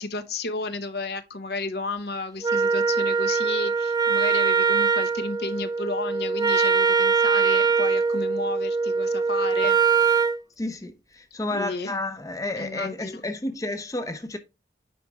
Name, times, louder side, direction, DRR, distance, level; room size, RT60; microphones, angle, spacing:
voice 1, 0.0-9.8 11.5-12.0 12.6-13.2, left 3 dB, 65° left, 0.9 m, -32 dB
Wind instrument woodwind instrument, 2.4-10.4, right 5 dB, 20° right, 0.4 m, -22 dB
voice 2, 10.6-14.4, left 2 dB, 20° left, 0.6 m, -31 dB
9.3 x 4.5 x 3.5 m
head